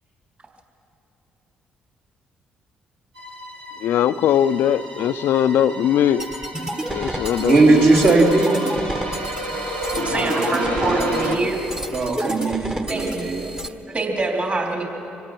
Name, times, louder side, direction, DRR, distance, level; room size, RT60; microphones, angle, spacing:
sound 1, 3.2-11.4, right 1 dB, 85° right, 1.8 m, -29 dB
voice 1, 3.8-6.2 6.9-7.8, left 10 dB, 65° left, 15 dB, 0.5 m, -20 dB
sound 2, 6.2-13.7, right 1 dB, 15° right, 1.2 m, -31 dB
voice 2, 7.4-8.7 11.9-13.5, right 3 dB, 55° right, -2 dB, 3.5 m, -17 dB
voice 3, 10.0-11.6 12.9-13.1 13.9-14.8, right 2 dB, 35° right, 0 dB, 3.6 m, -25 dB
25.0 x 17.5 x 6.0 m, 2.9 s
hypercardioid pair, 45°, 4 cm